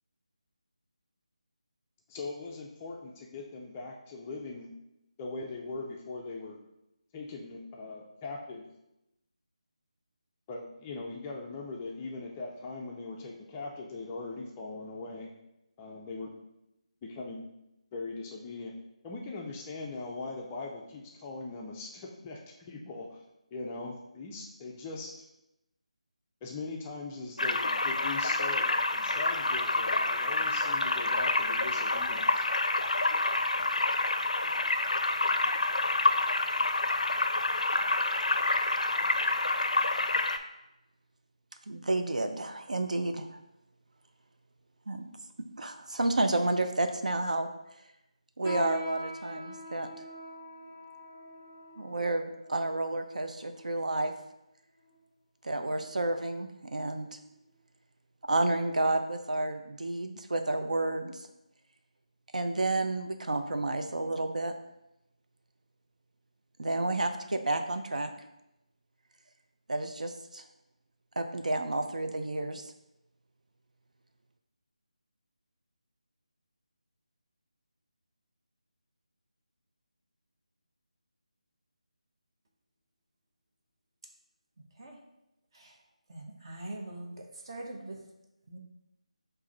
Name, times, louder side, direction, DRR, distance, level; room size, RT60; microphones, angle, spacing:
voice 1, 2.1-4.7 5.2-6.6 7.1-8.7 10.5-15.3 15.8-16.3 17.0-17.5 17.9-18.7 19.0-23.2 23.5-25.1 26.4-32.5, left 3 dB, 15° left, -1 dB, 0.3 m, -40 dB
Stream Underwater, 27.4-40.4, left 2 dB, 85° left, 0.4 m, -28 dB
voice 2, 41.7-43.4 44.9-45.0 45.6-47.5 48.4-49.9 51.8-54.1 55.4-57.1 58.3-61.2 62.3-64.5 66.6-68.1 69.7-70.4 71.2-72.6, right 2 dB, 85° right, 6 dB, 0.5 m, -30 dB
sound 1, 48.4-54.1 54.8-54.9 55.6-55.9 56.3-56.5 57.2-57.3, left 1 dB, 20° right, 1.5 m, -43 dB
voice 3, 86.1-87.1 87.5-88.0 88.5-88.6, right 2 dB, 45° right, 0 dB, 0.8 m, -41 dB
4.7 x 2.5 x 4.0 m, 0.88 s
figure-of-eight pair, 165°, 4 cm